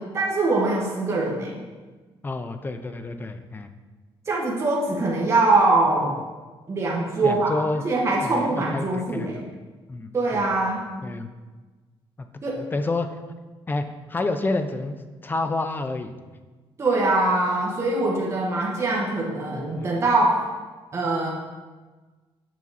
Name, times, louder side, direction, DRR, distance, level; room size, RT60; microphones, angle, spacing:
voice 1, 0.0-1.6 4.3-6.2 6.7-9.5 10.1-10.8 12.4-12.6 16.8-20.4 20.9-21.3, right 2 dB, 25° right, -3 dB, 1.2 m, -23 dB
voice 2, 2.2-3.7 6.0-6.1 7.2-7.8 8.2-9.4 9.9-10.5 11.0-11.3 12.2-12.3 12.6-13.2 13.7-15.0 15.2-16.1 19.8-19.9, left 2 dB, 20° left, 8 dB, 0.5 m, -29 dB
7.4 x 5.6 x 4.0 m, 1.3 s
cardioid pair, 135°, 10 cm